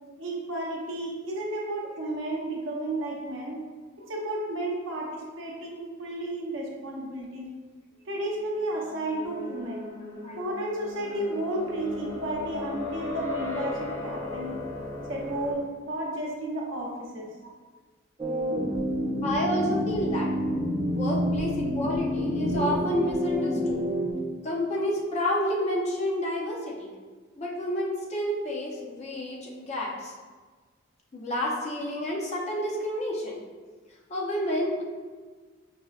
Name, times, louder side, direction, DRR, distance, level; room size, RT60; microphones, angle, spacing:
voice 1, 0.2-3.6 4.1-7.5 8.1-9.9 10.4-14.6 15.1-17.3, right 1 dB, 65° right, -2 dB, 0.7 m, -32 dB
sound 1, 8.2-15.5, left 3 dB, 85° left, 1.5 m, -37 dB
sound 2, 18.2-24.1, equal, 25° right, 0.4 m, -28 dB
voice 2, 19.2-20.3 20.9-23.8 24.4-26.9 27.4-30.1 31.1-33.4 34.1-34.8, left 1 dB, 35° left, -2 dB, 0.5 m, -29 dB
5.4 x 2.1 x 2.3 m, 1.4 s
head